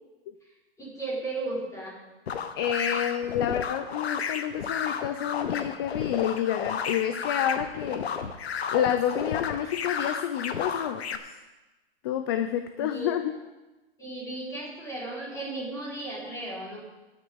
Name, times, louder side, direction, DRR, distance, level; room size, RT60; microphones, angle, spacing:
voice 1, 0.8-2.0 12.8-13.1 14.0-16.8, right 2 dB, 10° left, -5 dB, 4.3 m, -35 dB
sound 1, 2.3-11.2, left 6 dB, 75° left, 1.2 m, -32 dB
voice 2, 2.5-8.3 8.7-11.4 12.0-13.3, left 10 dB, 25° left, 9 dB, 0.4 m, -29 dB
18.0 x 9.4 x 3.7 m, 1.1 s
hypercardioid pair, 140°, 32 cm